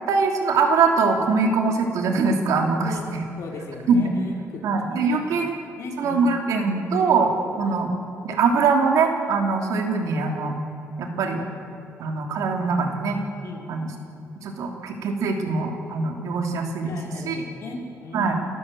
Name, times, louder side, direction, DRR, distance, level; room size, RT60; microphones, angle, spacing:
voice 1, 0.1-2.9 3.9-4.1 4.6-5.6 6.0-7.9 8.2-10.6 11.0-11.4 12.0-13.2 13.7-13.9 14.4-17.0 17.2-17.3 18.1-18.4, right 4 dB, 85° right, 3 dB, 3.2 m, -22 dB
voice 2, 3.4-4.6 4.9-5.2 5.8-6.2 7.6-7.8 13.4-13.7 16.8-18.3, left 3 dB, 60° left, 0 dB, 4.3 m, -37 dB
29.0 x 14.0 x 7.9 m, 2.8 s
cardioid pair, 165°, 6 cm